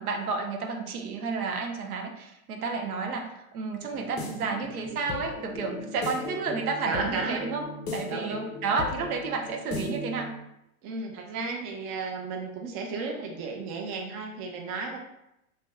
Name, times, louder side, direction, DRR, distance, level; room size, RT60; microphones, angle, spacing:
voice 1, 0.0-7.7 7.9-10.3, right 4 dB, 90° right, 3 dB, 0.6 m, -31 dB
sound 1, 3.8-10.4, left 3 dB, 25° left, 0.5 m, -38 dB
voice 2, 6.9-7.4 8.0-8.5 10.8-15.0, right 4 dB, 30° right, 2 dB, 0.5 m, -33 dB
2.6 x 2.1 x 3.4 m, 0.85 s
hypercardioid pair, 115°, 42 cm